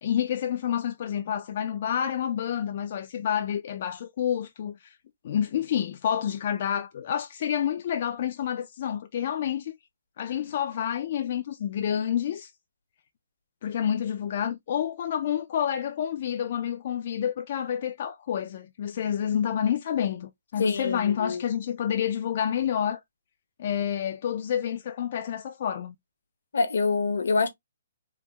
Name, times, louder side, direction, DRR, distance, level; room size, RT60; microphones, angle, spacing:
voice 1, 0.0-5.0 5.2-9.7 10.2-12.5 13.6-23.0 23.6-25.9, left 9 dB, 40° left, 0.3 m, -29 dB
voice 2, 20.6-21.4 26.5-27.5, left 4 dB, 75° left, 0.9 m, -25 dB
3.4 x 2.1 x 2.9 m
hypercardioid pair, 165°, 0 cm